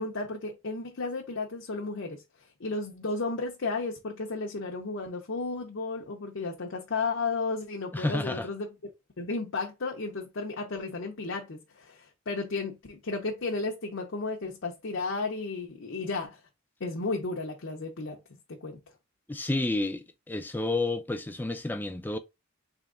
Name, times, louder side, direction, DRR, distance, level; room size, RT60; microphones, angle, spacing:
voice 1, 0.0-8.7 9.2-16.4 16.8-18.8, left 3 dB, 70° left, 0.7 m, -33 dB
voice 2, 7.9-8.5 19.3-22.2, left 2 dB, 10° left, 0.4 m, -30 dB
3.6 x 2.8 x 3.7 m
head